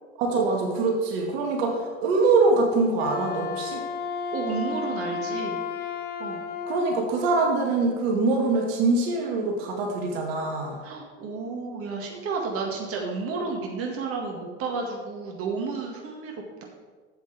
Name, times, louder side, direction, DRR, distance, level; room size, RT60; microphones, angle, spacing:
voice 1, 0.2-3.8 6.7-10.8, right 3 dB, 60° right, 1 dB, 2.0 m, -24 dB
Wind instrument woodwind instrument, 2.9-7.0, left 5 dB, 25° left, 0.9 m, -32 dB
voice 2, 4.3-5.6 6.2-6.4 10.8-16.3, right 4 dB, 40° right, 0 dB, 1.9 m, -31 dB
12.0 x 8.1 x 3.4 m, 1.4 s
hypercardioid pair, 85°, 35 cm